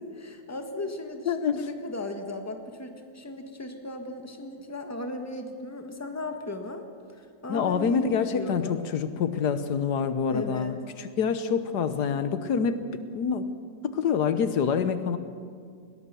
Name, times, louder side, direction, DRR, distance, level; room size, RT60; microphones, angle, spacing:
voice 1, 0.1-6.8 7.2-8.8 10.3-10.7, left 2 dB, 10° left, 5 dB, 1.5 m, -37 dB
voice 2, 1.3-1.6 7.5-12.9 13.1-13.5 13.8-15.2, left 6 dB, 80° left, 11 dB, 1.5 m, -26 dB
20.5 x 18.5 x 6.9 m, 2.1 s
omnidirectional pair, 1.7 m